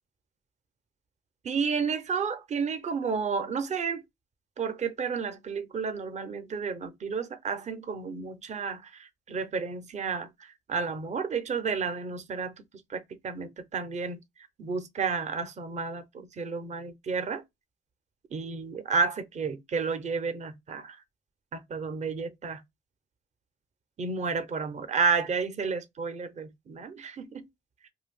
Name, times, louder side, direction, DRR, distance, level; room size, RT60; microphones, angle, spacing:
voice 1, 1.4-4.0 4.6-14.2 14.6-17.4 18.3-21.0 21.5-22.6 24.0-27.4, right 5 dB, 35° right, 0.6 m, -31 dB
2.6 x 2.2 x 3.4 m
cardioid pair, 90°, 20 cm